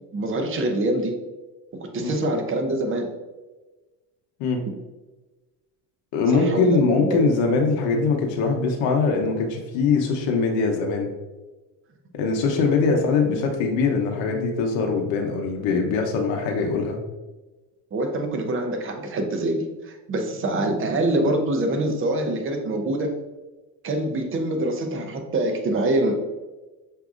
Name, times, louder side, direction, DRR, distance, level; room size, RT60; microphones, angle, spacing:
voice 1, 0.1-1.1 1.8-3.1 6.3-7.3 12.9-13.0 17.9-23.2 23.8-26.1, right 1 dB, 25° right, 4 dB, 0.7 m, -25 dB
voice 2, 6.1-11.1 12.1-17.0, left 4 dB, 65° left, 1 dB, 0.8 m, -22 dB
5.9 x 2.7 x 2.4 m, 1.2 s
supercardioid pair, 85°, 49 cm